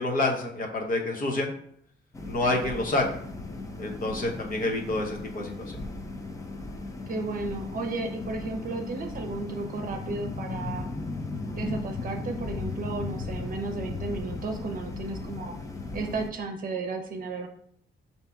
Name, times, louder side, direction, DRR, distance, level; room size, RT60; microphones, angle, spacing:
voice 1, 0.0-1.5 2.2-3.0 3.8-5.8, left 2 dB, 45° left, 1 dB, 0.9 m, -28 dB
sound 1, 2.1-16.3, left 3 dB, 15° left, 0.5 m, -36 dB
voice 2, 7.1-10.9 11.5-15.5 15.9-17.5, right 3 dB, 45° right, 4 dB, 0.7 m, -33 dB
5.5 x 2.8 x 3.5 m, 0.65 s
cardioid pair, 135°, 19 cm